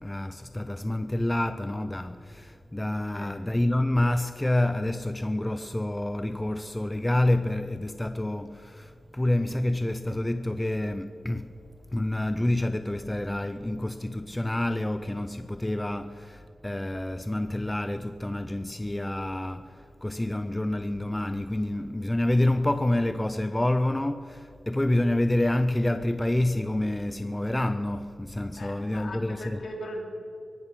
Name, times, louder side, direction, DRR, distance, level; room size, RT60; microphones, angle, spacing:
voice 1, 0.0-11.6 11.9-29.7, left 1 dB, 10° left, 0.4 m, -28 dB
voice 2, 28.5-30.0, equal, 55° left, 3.1 m, -39 dB
21.5 x 11.5 x 5.7 m
wide cardioid pair, 175°, 0 cm